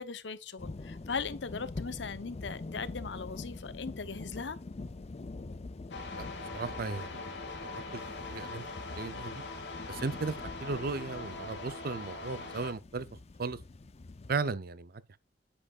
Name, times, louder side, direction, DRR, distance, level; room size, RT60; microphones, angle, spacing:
voice 1, 0.0-4.6, left 5 dB, 90° left, 0.8 m, -39 dB
sound 1, 0.6-14.3, left 3 dB, 35° left, 0.5 m, -45 dB
sound 2, 5.9-12.7, left 3 dB, 75° left, 2.1 m, -42 dB
voice 2, 6.5-7.3 7.7-8.6 8.9-9.4 9.9-13.1 13.4-13.6 14.3-15.2, right 4 dB, 55° right, 0.6 m, -36 dB
8.5 x 7.8 x 2.4 m
head